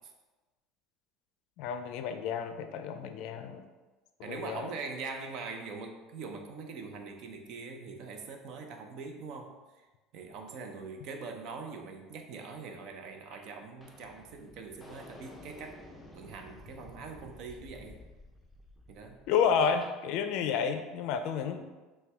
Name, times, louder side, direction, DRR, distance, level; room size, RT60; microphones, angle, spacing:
voice 1, 1.6-3.6 4.3-4.7 19.3-21.7, left 7 dB, 65° left, 8 dB, 0.4 m, -30 dB
voice 2, 4.2-9.8 10.1-15.8 16.1-18.0 18.9-19.2, right 4 dB, 60° right, 4 dB, 0.6 m, -43 dB
sound 1, 13.3-13.5 13.8-20.0, left 1 dB, 5° left, 0.6 m, -53 dB
5.6 x 2.2 x 3.4 m, 1.2 s
supercardioid pair, 125°, 0 cm